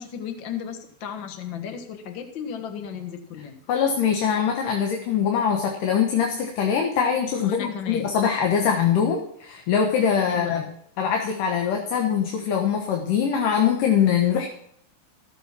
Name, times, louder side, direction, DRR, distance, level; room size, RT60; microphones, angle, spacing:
voice 1, 0.0-3.6 7.4-8.1 10.3-10.7, left 8 dB, 50° left, 6 dB, 1.6 m, -34 dB
voice 2, 3.7-10.6 11.0-14.5, left 7 dB, 80° left, 2 dB, 2.9 m, -23 dB
14.5 x 7.2 x 6.0 m, 0.69 s
omnidirectional pair, 3.7 m